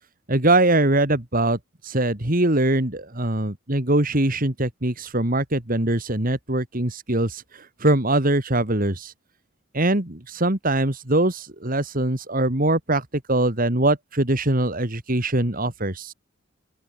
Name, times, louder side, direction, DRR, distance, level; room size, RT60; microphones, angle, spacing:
voice 1, 0.3-1.6 1.8-7.4 7.8-9.1 9.7-16.1, right 2 dB, 40° right, 2.7 m, -22 dB
open air
head